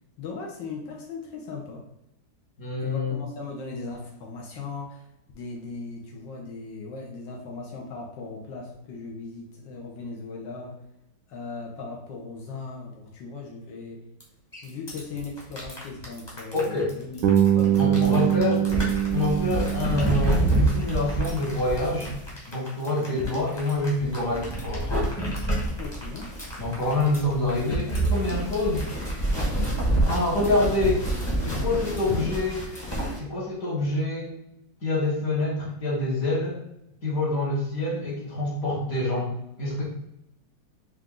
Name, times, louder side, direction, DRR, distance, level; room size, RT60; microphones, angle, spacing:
voice 1, 0.2-1.8 2.8-5.1 5.3-10.8 11.3-14.1 14.6-18.3 22.9-23.3 25.8-26.4, left 3 dB, 80° left, -1 dB, 1.4 m, -38 dB
voice 2, 2.6-3.2 16.5-16.9 17.8-18.6 19.1-22.1 22.5-25.1 26.6-28.9 30.0-31.0 31.4-32.7 33.2-34.3 34.8-36.6 37.0-39.3 39.6-39.8, left 2 dB, 55° left, -6 dB, 1.5 m, -26 dB
sound 1, 14.2-14.3 14.5-33.2, right 1 dB, 20° left, 0.9 m, -28 dB
Bass guitar, 17.2-21.2, right 10 dB, 70° right, 1.0 m, -24 dB
4.4 x 2.5 x 3.6 m, 0.81 s
omnidirectional pair, 2.0 m